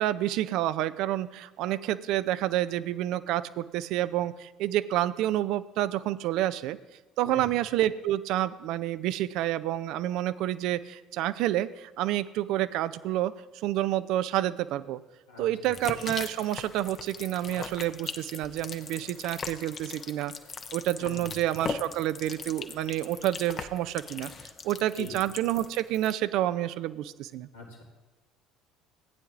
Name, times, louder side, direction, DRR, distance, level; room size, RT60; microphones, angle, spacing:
voice 1, 0.0-6.8 7.2-15.0 15.4-20.3 20.7-24.3 24.6-27.5, right 13 dB, 60° right, 14 dB, 0.4 m, -29 dB
sound 1, 15.6-26.1, left 5 dB, 40° left, 0.7 m, -40 dB
voice 2, 21.0-21.3 25.0-25.2 27.5-27.8, left 4 dB, 85° left, -5 dB, 1.9 m, -42 dB
15.0 x 9.1 x 2.5 m, 1.2 s
hypercardioid pair, 60°, 0 cm